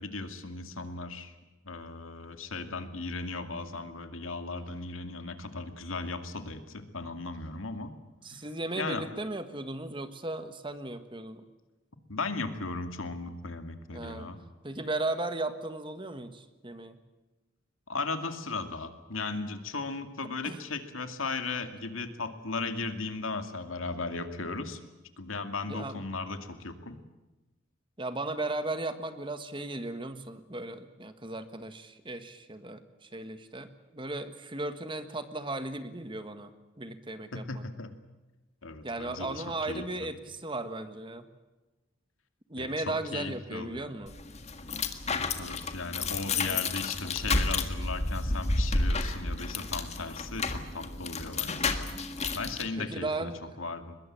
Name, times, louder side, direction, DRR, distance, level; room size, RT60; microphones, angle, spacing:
voice 1, 0.0-1.3 1.6-7.9 8.7-9.0 12.1-14.4 17.9-24.8 25.2-27.0 37.3-38.0 38.6-39.9 42.6-43.9 45.1-51.9 52.3-53.3 53.6-53.9, left 3 dB, 80° left, 8 dB, 2.4 m, -36 dB
voice 2, 8.2-11.4 13.9-14.3 14.6-17.0 20.4-20.6 25.7-26.0 28.0-37.6 38.8-41.3 42.5-44.1 46.3-46.6 52.8-53.6, right 2 dB, 25° right, 10 dB, 1.6 m, -36 dB
sound 1, 44.1-52.7, left 3 dB, 35° left, 1.8 m, -31 dB
23.0 x 21.0 x 8.8 m, 1.1 s
head